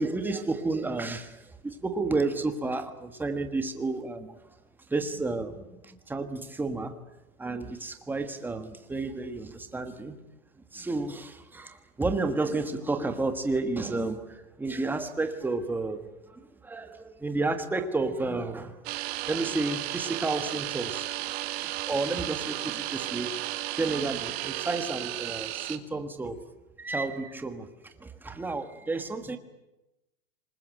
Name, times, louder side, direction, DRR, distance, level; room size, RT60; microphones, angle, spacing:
voice 1, 0.0-4.4 4.9-7.0 7.4-10.2 10.7-21.1 21.6-23.4 23.8-26.4 26.8-29.4, right 3 dB, 5° right, 7 dB, 1.4 m, -31 dB
sound 1, 18.9-25.8, right 15 dB, 50° right, 1.8 m, -34 dB
26.5 x 20.5 x 9.1 m, 0.97 s
supercardioid pair, 160°, 40 cm